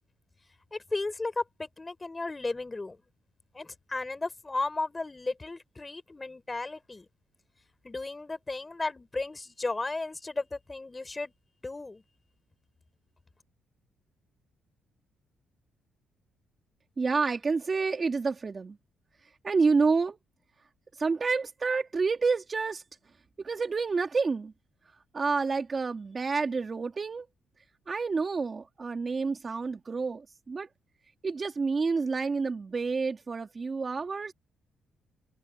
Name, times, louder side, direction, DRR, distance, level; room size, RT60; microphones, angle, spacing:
voice 1, 0.7-3.0 3.5-7.1 7.8-11.3 11.6-12.0, left 3 dB, 20° left, 6.4 m, -34 dB
voice 2, 17.0-18.8 19.4-20.2 21.0-22.8 23.4-24.5 25.1-27.3 27.9-30.7 31.2-34.3, right 4 dB, 35° right, 2.2 m, -29 dB
cardioid pair, 90°, 0 cm